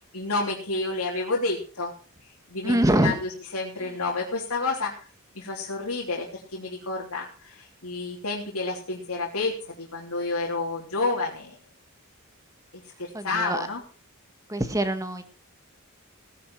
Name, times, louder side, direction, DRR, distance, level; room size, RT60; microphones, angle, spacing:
voice 1, 0.1-1.9 2.5-4.9 5.3-6.3 6.5-11.6 13.0-13.8, left 3 dB, 80° left, -3 dB, 3.3 m, -30 dB
voice 2, 2.6-3.2 3.8-3.9 13.1-13.7 14.5-15.2, right 1 dB, 15° right, 8 dB, 1.7 m, -24 dB
17.5 x 10.5 x 4.6 m, 0.36 s
head